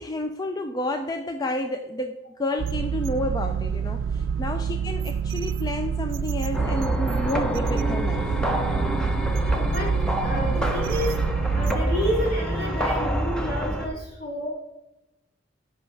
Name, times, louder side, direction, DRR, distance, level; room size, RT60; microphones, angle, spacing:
voice 1, 0.0-8.3, left 1 dB, 20° left, 6 dB, 0.4 m, -30 dB
sound 1, 2.6-11.8, right 7 dB, 75° right, 0.4 m, -28 dB
sound 2, 6.5-13.9, right 1 dB, 5° left, 0.8 m, -26 dB
voice 2, 9.4-9.9 10.2-11.2 11.5-14.5, equal, 50° left, -3 dB, 2.5 m, -30 dB
13.0 x 5.5 x 3.3 m, 1.0 s
head